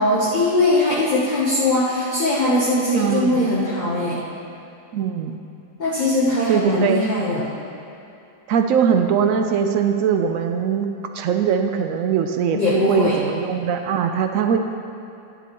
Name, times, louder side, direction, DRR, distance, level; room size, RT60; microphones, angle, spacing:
voice 1, 0.0-4.2 5.8-7.5 12.5-13.2, left 1 dB, 30° left, -7 dB, 0.9 m, -20 dB
voice 2, 2.9-3.5 4.9-5.4 6.5-7.0 8.5-10.9 11.1-14.6, right 7 dB, 75° right, 6 dB, 0.7 m, -21 dB
11.0 x 10.5 x 3.0 m, 2.8 s
omnidirectional pair, 2.0 m